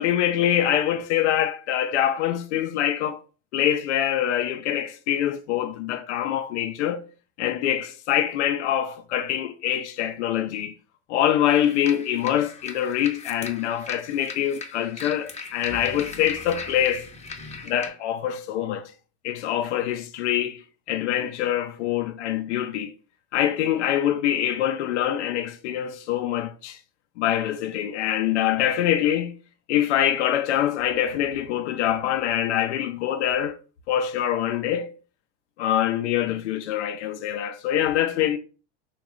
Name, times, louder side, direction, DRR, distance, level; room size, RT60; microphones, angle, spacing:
voice 1, 0.0-3.2 3.5-7.0 7.4-10.7 11.1-17.1 17.6-18.9 19.2-20.6 20.9-22.9 23.3-26.8 27.2-29.3 29.7-33.6 33.9-34.9 35.6-38.4, left 11 dB, 85° left, 0.5 m, -24 dB
sound 1, 11.5-17.9, left 4 dB, 20° left, 0.6 m, -39 dB
3.1 x 2.3 x 3.6 m
hypercardioid pair, 95°, 34 cm